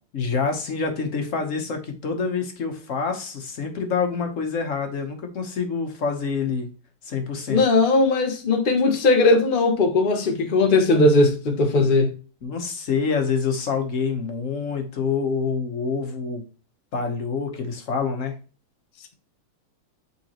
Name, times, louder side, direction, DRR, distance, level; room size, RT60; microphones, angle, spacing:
voice 1, 0.1-6.7 7.0-7.6 12.4-16.4 16.9-18.4, left 5 dB, 50° left, 1.0 m, -26 dB
voice 2, 7.5-12.1, left 2 dB, 80° left, 0.4 m, -18 dB
8.3 x 3.9 x 2.9 m
omnidirectional pair, 2.3 m